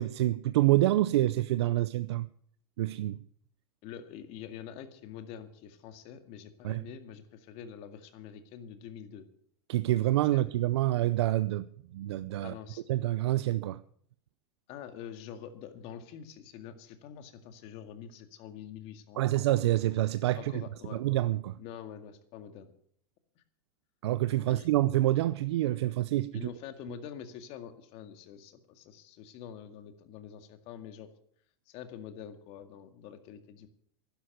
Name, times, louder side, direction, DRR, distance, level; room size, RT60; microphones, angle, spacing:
voice 1, 0.0-2.3 2.8-3.2 6.6-6.8 9.7-11.7 11.9-12.5 12.9-13.8 19.2-20.6 20.9-21.6 24.0-26.5, right 15 dB, 80° right, 0.6 m, -27 dB
voice 2, 3.8-9.3 10.3-10.4 12.4-12.8 14.7-19.2 20.4-21.0 21.6-22.7 23.4-23.5 24.5-24.7 26.3-31.1 31.7-33.7, left 9 dB, 45° left, 2.0 m, -46 dB
11.5 x 10.5 x 8.0 m
supercardioid pair, 140°, 14 cm